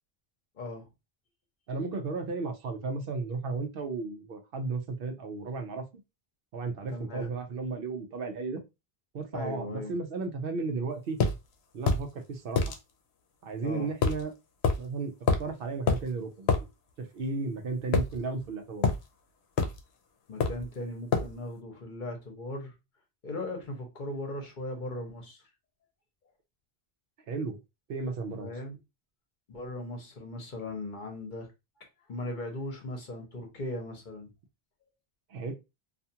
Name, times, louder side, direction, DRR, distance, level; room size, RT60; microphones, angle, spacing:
voice 1, 0.6-0.9 6.9-7.3 9.3-9.9 13.6-13.9 20.3-22.7 23.2-25.4 28.4-28.8 29.5-31.5 32.1-34.3, left 1 dB, 55° left, 0.9 m, -38 dB
voice 2, 1.7-5.8 6.5-8.6 9.1-11.2 11.7-12.6 13.4-14.3 14.8-15.1 15.4-16.7 17.0-18.9 27.3-27.6 27.9-28.5 35.3-35.5, right 4 dB, 70° right, 0.8 m, -34 dB
sound 1, 11.2-11.4 11.9-12.1 12.6-12.8 14.0-14.2 14.6-14.8 15.3-15.5 15.9-16.0 16.5-16.6 17.9-18.5 18.8-19.0 19.6-19.8 20.4-20.7 21.1-21.3, left 4 dB, 85° left, 0.8 m, -26 dB
2.5 x 2.3 x 2.7 m
omnidirectional pair, 1.0 m